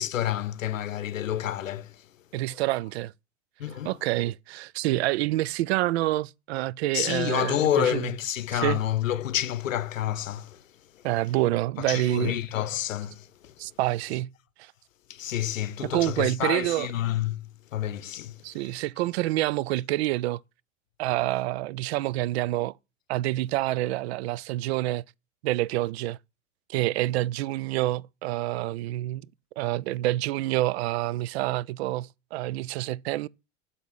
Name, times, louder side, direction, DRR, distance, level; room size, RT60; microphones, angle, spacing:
voice 1, 0.0-2.1 3.6-4.0 6.9-10.6 10.9-11.0 11.8-13.5 15.1-18.6, left 11 dB, 80° left, 0.7 m, -29 dB
voice 2, 2.3-3.1 3.8-8.1 8.5-8.8 11.0-12.4 13.6-14.3 14.6-14.7 15.8-16.9 18.4-20.4 21.0-22.7 23.1-25.0 25.4-26.2 26.7-29.3 29.6-33.3, right 16 dB, 55° right, 0.5 m, -27 dB
12.0 x 4.2 x 7.7 m
figure-of-eight pair, 85°, 39 cm